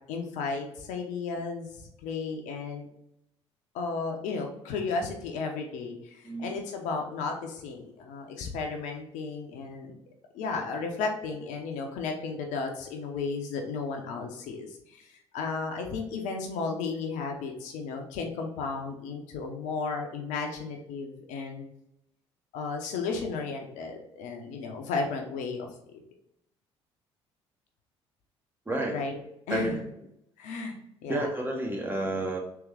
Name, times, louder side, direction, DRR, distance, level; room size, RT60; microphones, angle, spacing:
voice 1, 0.1-2.9 3.7-9.9 10.3-21.6 22.5-26.0 28.9-29.2 29.5-29.8 30.4-30.8 31.0-31.3, left 4 dB, 55° left, 2 dB, 0.7 m, -34 dB
voice 2, 28.7-29.0 29.5-29.8 31.1-32.4, right 1 dB, 15° right, 0 dB, 0.9 m, -30 dB
3.6 x 3.0 x 3.3 m, 0.78 s
figure-of-eight pair, 50°, 15 cm